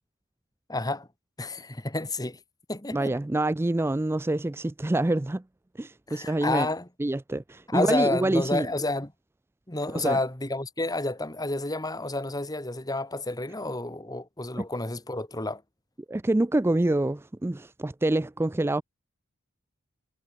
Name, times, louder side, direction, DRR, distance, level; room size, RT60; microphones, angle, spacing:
voice 1, 0.7-1.1 1.4-2.4 2.7-3.1 6.1-6.9 7.7-9.1 9.7-15.6, left 2 dB, 15° left, 1.9 m, -30 dB
voice 2, 2.9-5.4 5.8-6.7 7.0-8.7 9.9-10.2 14.6-14.7 16.1-18.8, right 1 dB, 10° right, 0.3 m, -26 dB
head